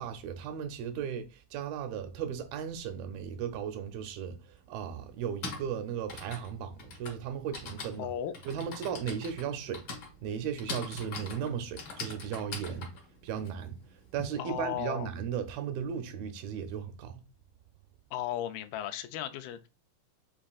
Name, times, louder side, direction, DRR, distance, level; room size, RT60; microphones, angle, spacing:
voice 1, 0.0-8.1 8.5-9.8 10.2-12.9 13.2-13.8 14.1-17.2, right 8 dB, 90° right, 2.5 m, -36 dB
Typing, 4.1-4.2 5.1-14.2, left 4 dB, 70° left, 1.1 m, -43 dB
voice 2, 8.0-8.4 14.4-15.1 18.1-19.7, left 11 dB, 85° left, 2.3 m, -36 dB
7.2 x 2.5 x 2.3 m
omnidirectional pair, 4.1 m